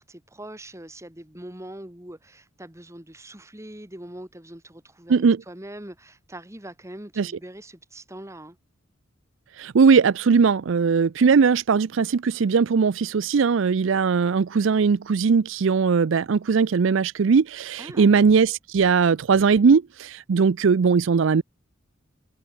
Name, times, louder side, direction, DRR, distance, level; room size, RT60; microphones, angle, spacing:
voice 1, 0.0-8.6 17.8-18.2, right 1 dB, 15° right, 2.2 m, -42 dB
voice 2, 5.1-5.4 7.2-7.3 9.6-21.4, right 5 dB, 65° right, 0.4 m, -19 dB
head